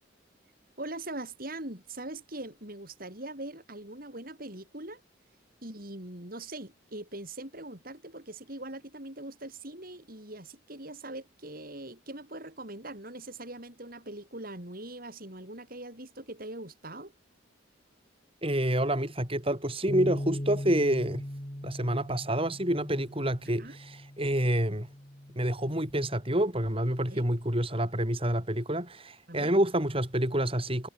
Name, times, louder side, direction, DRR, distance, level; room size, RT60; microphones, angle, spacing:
voice 1, 0.8-5.0 5.6-17.1 23.6-23.8 27.1-27.2 29.3-29.5, right 2 dB, 50° right, 6.4 m, -42 dB
voice 2, 18.4-21.2 21.6-24.9 25.3-30.9, right 1 dB, 30° right, 6.8 m, -28 dB
sound 1, 19.9-26.1, equal, 30° left, 3.5 m, -39 dB
head